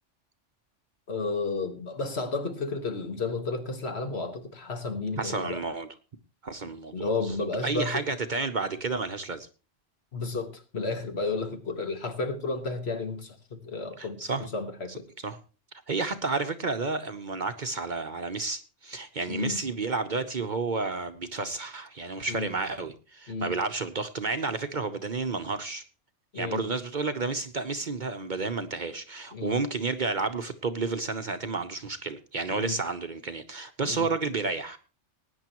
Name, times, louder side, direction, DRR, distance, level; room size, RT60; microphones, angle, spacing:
voice 1, 1.1-5.6 6.9-8.0 10.1-13.4 13.6-14.2 14.5-15.1 19.3-19.6 22.3-22.5 23.3-23.5 26.3-26.6 29.3-29.6 32.5-32.8 33.8-34.1, left 3 dB, 60° left, 1.8 m, -32 dB
voice 2, 5.2-5.9 6.4-7.4 7.6-9.5 14.0-14.5 14.9-15.4 15.9-25.8 26.3-34.8, right 3 dB, 45° right, 0.8 m, -31 dB
19.5 x 9.7 x 3.0 m
omnidirectional pair, 1.2 m